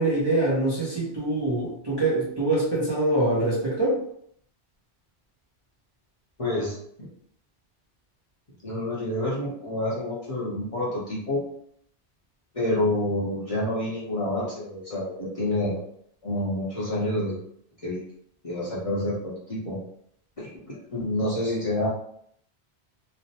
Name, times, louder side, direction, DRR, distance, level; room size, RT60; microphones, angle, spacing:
voice 1, 0.0-4.0, right 2 dB, 25° right, -8 dB, 0.8 m, -24 dB
voice 2, 6.4-6.8 8.6-11.4 12.5-15.8 16.2-17.4 17.8-18.0 18.4-19.8 20.4-21.9, left 1 dB, 35° left, -7 dB, 0.8 m, -28 dB
3.2 x 2.1 x 2.8 m, 0.67 s
omnidirectional pair, 1.1 m